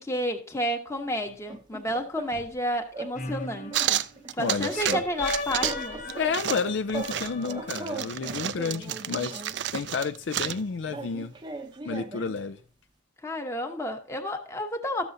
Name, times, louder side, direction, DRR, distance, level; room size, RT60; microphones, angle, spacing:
voice 1, 0.0-4.0 4.3-6.0 13.2-15.1, equal, 15° left, 1.0 m, -31 dB
sound 1, 1.2-2.6 2.9-3.2 3.4-5.3 5.6-7.2 7.4-9.6 10.4-12.4, right 3 dB, 25° right, 0.6 m, -39 dB
sound 2, 3.1-4.2 4.7-8.1, left 3 dB, 45° left, 0.9 m, -36 dB
sound 3, 3.7-5.0 5.2-5.8 6.1-10.6, right 11 dB, 65° right, 0.4 m, -31 dB
voice 2, 4.4-5.0 6.2-9.4 9.7-11.3 11.8-12.6, left 5 dB, 75° left, 0.5 m, -30 dB
13.5 x 7.0 x 2.7 m
head